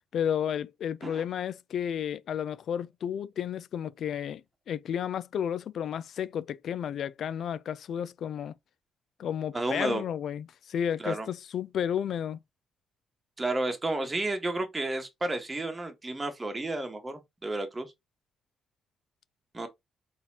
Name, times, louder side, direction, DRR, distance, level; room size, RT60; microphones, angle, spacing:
voice 1, 0.1-4.4 4.7-8.5 9.2-12.4, left 9 dB, 65° left, 0.4 m, -32 dB
voice 2, 9.5-10.0 11.0-11.3 13.4-17.9 19.5-19.7, right 2 dB, 20° right, 1.4 m, -31 dB
4.1 x 3.6 x 2.8 m
cardioid pair, 90°, 0 cm